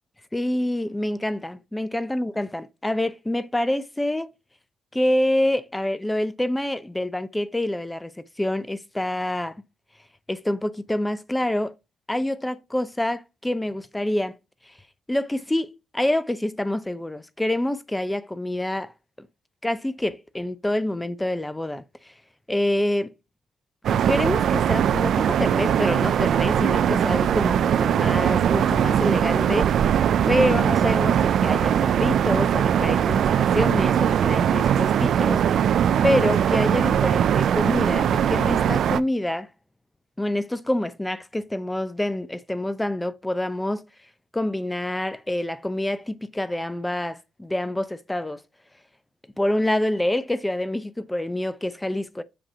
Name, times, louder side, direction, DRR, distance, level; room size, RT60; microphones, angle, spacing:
voice 1, 0.3-4.3 4.9-8.1 8.4-9.6 10.3-11.7 12.1-14.4 14.7-14.8 15.1-18.9 19.2-19.3 19.6-22.1 22.5-23.1 24.1-29.9 30.3-35.4 36.0-39.5 40.2-43.9 44.3-48.4 49.4-52.2, left 1 dB, 10° left, 0.6 m, -26 dB
sound 1, 23.8-39.0, right 9 dB, 65° right, 0.3 m, -21 dB
7.7 x 3.0 x 4.9 m
cardioid pair, 90°, 0 cm